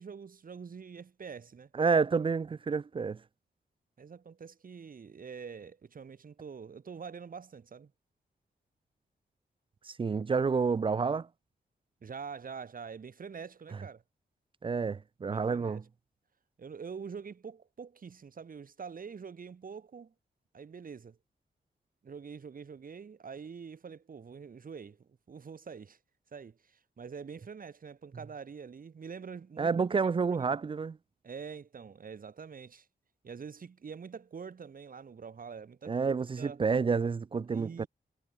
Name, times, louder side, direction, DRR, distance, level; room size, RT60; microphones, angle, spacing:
voice 1, 0.0-1.7 4.0-7.9 12.0-14.0 15.2-15.8 16.6-20.1 20.5-21.2 22.0-26.0 26.3-30.6 31.2-32.9 33.2-36.6 37.5-37.9, right 6 dB, 55° right, 4.3 m, -45 dB
voice 2, 1.7-3.2 9.9-11.3 14.6-15.8 29.6-31.0 35.9-37.8, right 5 dB, 30° right, 0.4 m, -29 dB
wide cardioid pair, 125°, 18 cm